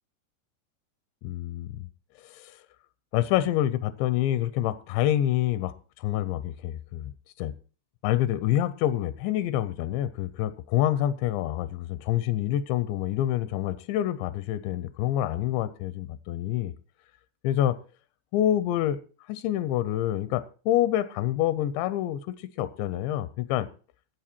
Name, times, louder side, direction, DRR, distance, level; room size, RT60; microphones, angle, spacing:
voice 1, 1.2-1.9 2.2-2.6 3.1-7.1 7.4-7.5 8.0-16.7 17.4-17.8 18.3-19.0 19.3-23.7, left 12 dB, 85° left, 3.0 m, -27 dB
16.5 x 7.7 x 4.4 m
omnidirectional pair, 5.0 m